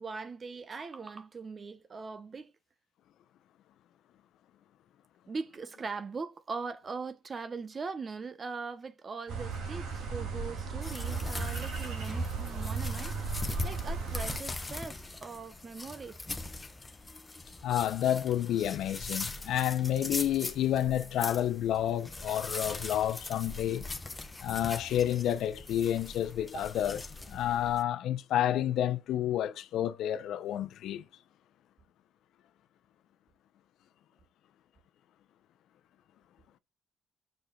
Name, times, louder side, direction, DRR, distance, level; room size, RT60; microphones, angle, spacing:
voice 1, 0.0-2.5 5.3-16.2 26.5-26.7, right 4 dB, 40° right, 0.8 m, -41 dB
sound 1, 9.3-14.4, right 4 dB, 90° right, 2.7 m, -36 dB
sound 2, 10.8-27.8, left 2 dB, 20° left, 1.0 m, -40 dB
voice 2, 17.6-23.8 24.4-27.0 27.3-31.0, left 11 dB, 80° left, 0.6 m, -30 dB
18.0 x 6.5 x 2.4 m
cardioid pair, 90°, 0 cm